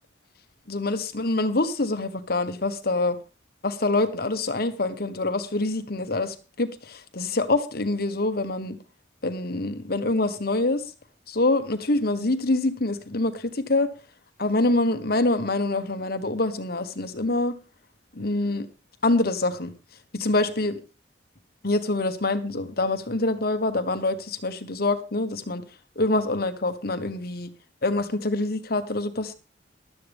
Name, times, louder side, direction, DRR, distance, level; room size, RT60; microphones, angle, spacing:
voice 1, 0.7-3.2 3.6-8.8 9.2-10.8 11.3-13.9 14.4-17.5 18.1-18.7 19.0-19.7 20.1-20.8 21.6-25.6 26.0-27.5 27.8-29.3, left 2 dB, 55° left, 10 dB, 1.3 m, -25 dB
15.5 x 12.0 x 3.5 m, 0.31 s
head